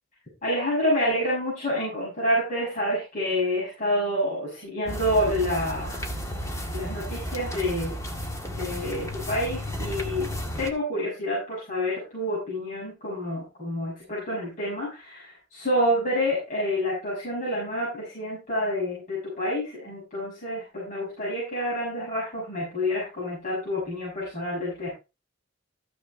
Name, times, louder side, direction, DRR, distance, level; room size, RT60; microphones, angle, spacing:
voice 1, 0.4-6.0 6.7-8.0 8.6-24.9, equal, 40° left, -6 dB, 6.5 m, -28 dB
sound 1, 4.9-10.7, equal, 15° left, 1.6 m, -33 dB
14.0 x 6.4 x 4.2 m, 0.28 s
head